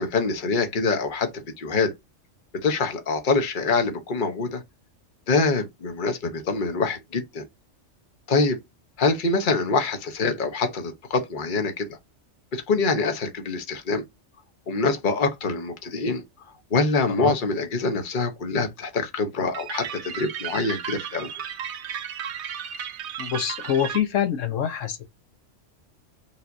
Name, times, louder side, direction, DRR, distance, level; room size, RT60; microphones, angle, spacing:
voice 1, 0.0-1.9 2.5-4.6 5.3-7.5 8.3-8.6 9.0-12.0 12.5-14.0 14.7-16.2 16.7-21.5, left 3 dB, 45° left, 1.1 m, -25 dB
sound 1, 19.5-24.0, right 9 dB, 65° right, 1.0 m, -34 dB
voice 2, 23.2-25.0, left 9 dB, 85° left, 1.2 m, -25 dB
5.4 x 3.4 x 2.6 m
omnidirectional pair, 1.3 m